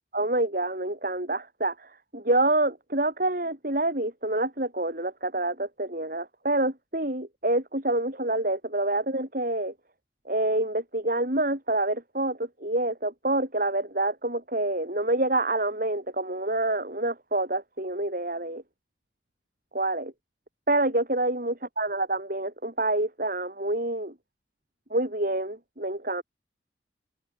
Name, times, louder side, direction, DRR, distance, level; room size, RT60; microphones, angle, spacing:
voice 1, 0.1-9.7 10.3-18.6 19.7-20.1 20.7-24.1 24.9-26.2, right 2 dB, 50° right, 5.4 m, -27 dB
head